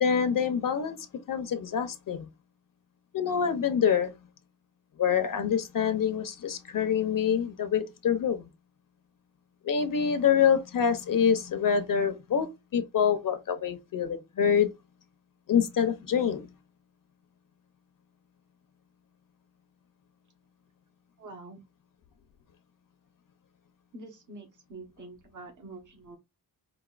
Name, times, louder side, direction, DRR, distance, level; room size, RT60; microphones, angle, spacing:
voice 1, 0.0-2.3 3.1-4.1 5.0-8.5 9.6-14.7 15.5-16.5, left 7 dB, 60° left, 0.8 m, -26 dB
voice 2, 21.2-21.6 23.9-26.2, right 2 dB, 50° right, 1.4 m, -46 dB
5.0 x 2.6 x 2.4 m
wide cardioid pair, 150°, 38 cm